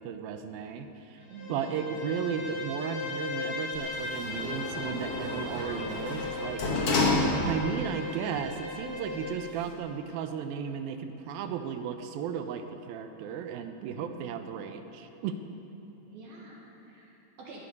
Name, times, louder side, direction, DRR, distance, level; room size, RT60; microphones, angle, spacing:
voice 1, 0.0-6.7 7.4-15.4, right 7 dB, 80° right, 7 dB, 2.1 m, -35 dB
Bowed string instrument, 1.2-9.5, left 3 dB, 75° left, 7.2 m, -38 dB
voice 2, 1.3-1.7 13.9-14.5 16.1-17.6, right 2 dB, 65° right, -3 dB, 3.2 m, -48 dB
Sliding door, 3.7-7.9 8.3-8.4, left 2 dB, 55° left, 1.7 m, -30 dB
19.5 x 13.5 x 5.4 m, 3.0 s
omnidirectional pair, 5.1 m